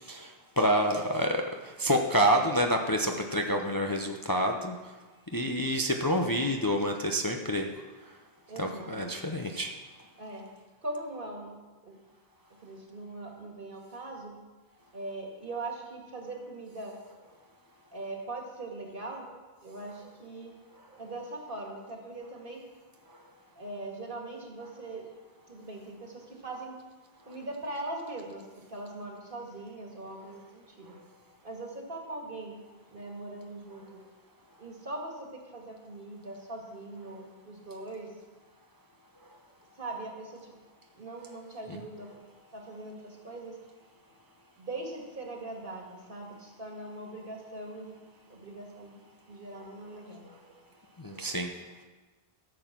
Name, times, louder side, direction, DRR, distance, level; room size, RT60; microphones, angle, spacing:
voice 1, 0.1-4.8 5.3-7.7 8.6-9.7 51.0-51.5, equal, 25° left, 2 dB, 0.6 m, -28 dB
voice 2, 8.5-9.2 10.2-10.4 10.8-11.5 11.8-12.0 12.5-14.3 14.9-17.3 17.9-20.5 20.9-22.6 23.6-25.1 25.5-26.8 27.3-30.9 31.4-32.6 32.9-34.0 34.6-38.1 39.8-40.6 40.9-42.2 42.5-43.6 44.6-48.0 48.3-49.0 49.3-50.6 51.3-51.4, right 2 dB, 60° right, 0 dB, 2.2 m, -41 dB
13.0 x 7.3 x 5.9 m, 1.3 s
omnidirectional pair, 1.0 m